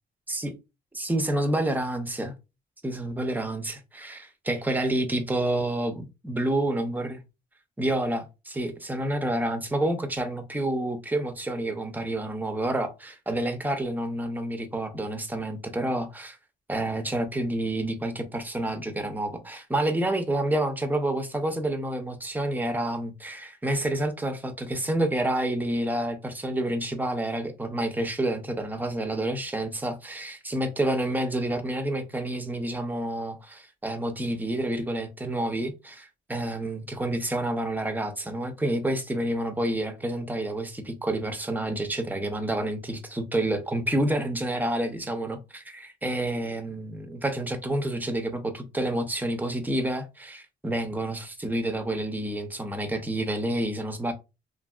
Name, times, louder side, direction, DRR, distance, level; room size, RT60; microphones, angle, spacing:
voice 1, 0.9-2.3 2.8-7.2 7.8-16.4 16.7-54.1, right 1 dB, 10° right, 0.7 m, -29 dB
2.8 x 2.7 x 2.3 m
cardioid pair, 90°, 20 cm